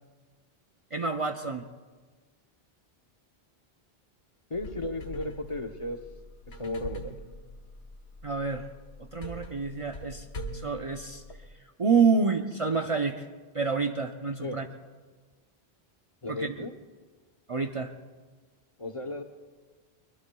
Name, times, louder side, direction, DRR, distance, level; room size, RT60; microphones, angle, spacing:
voice 1, 0.9-1.6 8.2-8.7 9.0-10.3 10.5-11.2 11.8-13.3 13.5-14.7 16.3-16.7 17.5-17.9, right 5 dB, 40° right, 5 dB, 0.6 m, -28 dB
sound 1, 4.5-11.5, equal, 80° left, 1.4 m, -43 dB
voice 2, 4.5-6.0 6.6-7.1 14.4-14.6 16.2-16.7 18.8-19.2, left 2 dB, 35° left, 5 dB, 0.8 m, -34 dB
23.0 x 21.5 x 2.3 m, 1.4 s
omnidirectional pair, 1.0 m